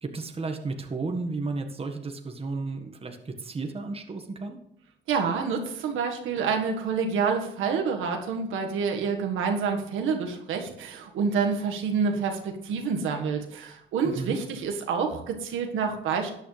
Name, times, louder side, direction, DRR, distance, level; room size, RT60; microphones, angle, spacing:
voice 1, 0.0-4.6 14.0-14.4, right 3 dB, 30° right, 3 dB, 1.6 m, -33 dB
voice 2, 5.1-16.3, right 5 dB, 85° right, 2 dB, 1.7 m, -28 dB
13.5 x 9.3 x 3.4 m, 0.79 s
cardioid pair, 90°, 20 cm